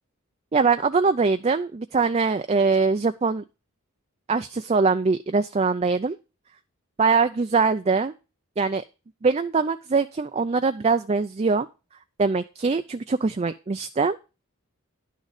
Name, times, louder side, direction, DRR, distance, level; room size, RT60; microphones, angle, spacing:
voice 1, 0.5-3.4 4.3-6.2 7.0-8.1 8.6-8.8 9.2-11.7 12.2-14.2, right 4 dB, 30° right, 9 dB, 0.4 m, -22 dB
11.0 x 6.5 x 4.9 m, 0.30 s
head